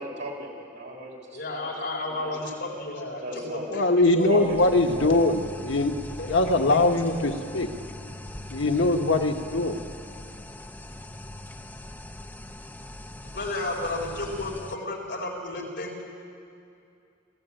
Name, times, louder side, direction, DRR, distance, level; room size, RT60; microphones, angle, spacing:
voice 1, 0.0-2.6 3.2-3.7 4.3-5.3, equal, 60° right, -1 dB, 5.4 m, -37 dB
voice 2, 1.3-4.8 6.2-7.3 13.3-16.0, left 2 dB, 60° left, -1 dB, 4.6 m, -33 dB
voice 3, 3.7-5.9 6.3-7.7 8.5-9.8, left 2 dB, 80° left, 4 dB, 1.3 m, -22 dB
sound 1, 4.2-14.8, left 1 dB, 10° left, 0.7 m, -41 dB
26.0 x 15.5 x 9.1 m, 2.5 s
head